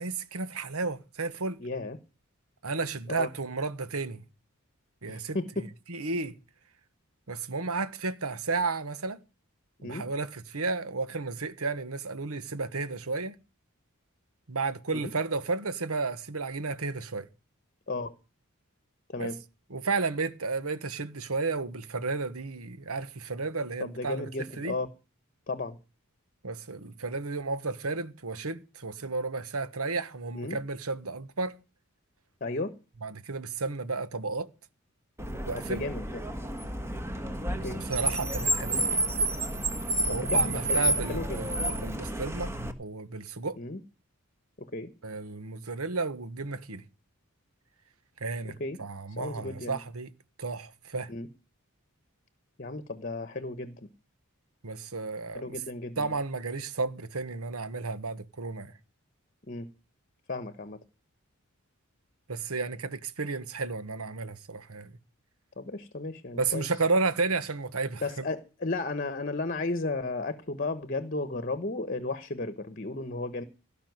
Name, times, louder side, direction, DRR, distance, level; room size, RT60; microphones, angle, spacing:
voice 1, 0.0-1.6 2.6-4.2 5.0-6.3 7.3-9.2 9.8-13.3 14.5-17.3 19.2-19.3 19.7-24.3 24.6-24.7 26.4-31.6 33.0-34.5 35.5-35.8 37.9-38.9 40.1-43.6 45.0-46.8 48.2-50.1 50.4-51.1 54.6-55.6 56.0-58.7 62.3-64.9 66.3-68.2, right 3 dB, 85° right, 1.3 m, -32 dB
voice 2, 1.6-2.0 3.1-3.3 5.1-5.4 9.8-10.0 14.9-15.0 17.9-18.1 19.1-19.4 23.8-24.9 25.5-25.8 30.3-30.6 32.4-32.8 35.5-36.2 37.6-37.8 40.1-41.6 43.6-43.8 44.6-44.9 48.6-48.8 49.2-49.8 51.1-51.3 52.6-53.8 55.3-56.2 59.5-59.7 60.3-60.8 65.6-66.7 68.0-73.4, left 2 dB, 40° left, 1.1 m, -34 dB
Car, 35.2-42.7, right 1 dB, 10° right, 1.5 m, -30 dB
17.0 x 5.9 x 9.4 m
head